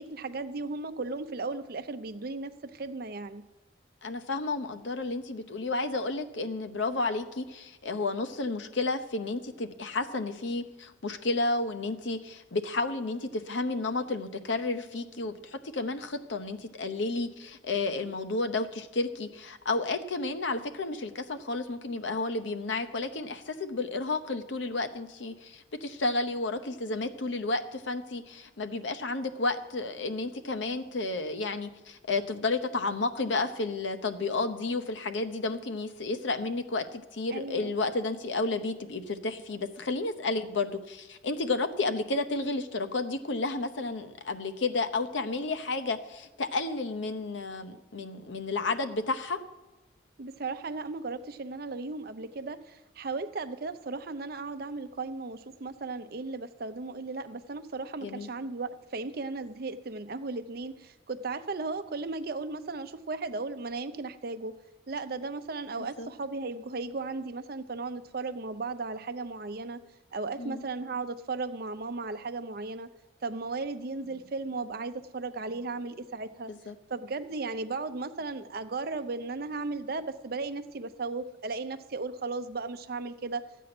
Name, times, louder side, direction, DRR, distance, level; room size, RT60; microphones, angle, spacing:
voice 1, 0.0-3.4 37.3-37.7 50.2-64.6 64.9-69.8 70.1-72.9 73.2-76.5 76.9-83.5, right 3 dB, 55° right, 10 dB, 0.6 m, -36 dB
voice 2, 4.0-49.4 58.0-58.3 65.8-66.1 70.4-70.6 76.5-76.7, left 3 dB, 80° left, 8 dB, 0.8 m, -32 dB
13.0 x 8.3 x 6.0 m, 1.1 s
head